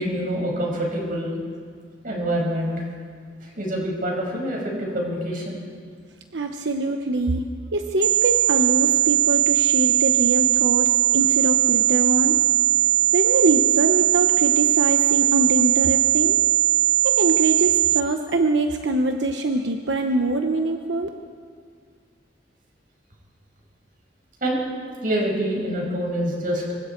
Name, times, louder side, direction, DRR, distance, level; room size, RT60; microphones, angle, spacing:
voice 1, 0.0-1.4 2.0-2.8 3.4-5.5 24.4-24.6 25.0-26.8, equal, 50° right, -1 dB, 5.9 m, -26 dB
voice 2, 6.3-7.4 7.7-12.4 13.1-16.4 17.0-21.1, right 2 dB, 90° right, 4 dB, 1.0 m, -24 dB
sound 1, 8.0-18.0, right 13 dB, 25° right, 0.8 m, -19 dB
26.5 x 24.0 x 4.6 m, 2.1 s
head